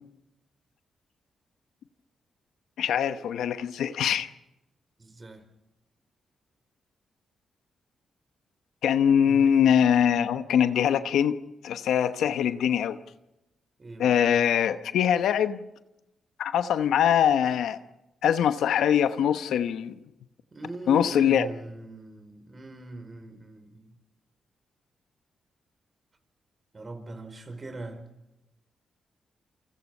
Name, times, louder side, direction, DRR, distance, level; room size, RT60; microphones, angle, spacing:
voice 1, 2.8-4.3 8.8-11.4 11.6-13.0 14.0-15.6 16.4-17.8 18.2-19.9 20.9-21.5, left 9 dB, 80° left, 11 dB, 1.0 m, -23 dB
voice 2, 5.0-5.4 9.2-9.4 13.8-14.3 20.5-23.9 26.7-28.0, right 2 dB, 40° right, 8 dB, 4.9 m, -41 dB
29.0 x 25.0 x 5.5 m, 0.94 s
supercardioid pair, 50°, 0 cm